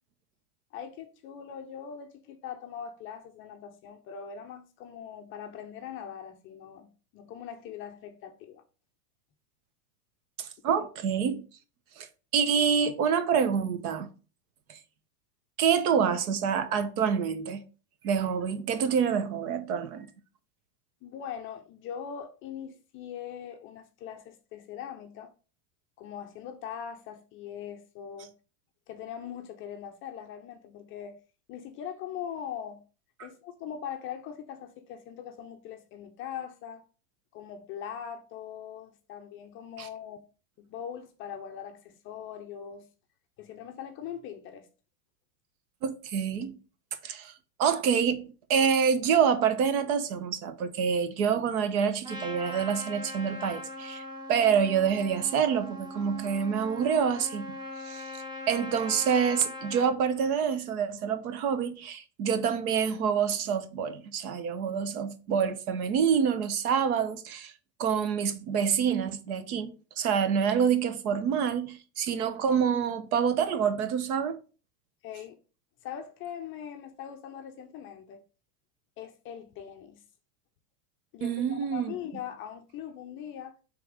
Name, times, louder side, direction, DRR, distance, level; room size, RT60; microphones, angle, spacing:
voice 1, 0.7-6.9 7.1-8.6 10.7-10.9 21.0-25.3 26.0-28.3 28.9-31.2 31.5-32.8 33.2-36.8 37.3-40.2 40.6-42.9 43.4-44.7 75.0-75.4 75.8-78.2 79.0-80.0 81.1-83.5, left 8 dB, 25° left, 0.5 m, -41 dB
voice 2, 10.4-11.4 12.0-12.1 12.3-14.1 14.7-14.8 15.6-17.6 18.0-20.1 39.8-39.9 45.8-46.6 47.0-47.3 47.6-48.2 48.5-54.0 54.3-57.6 57.8-67.5 67.8-69.7 70.0-74.4 81.2-81.9, right 7 dB, 65° right, 1.1 m, -27 dB
Trumpet, 52.0-59.9, left 1 dB, 10° right, 0.8 m, -40 dB
5.7 x 3.5 x 4.8 m
supercardioid pair, 140°, 47 cm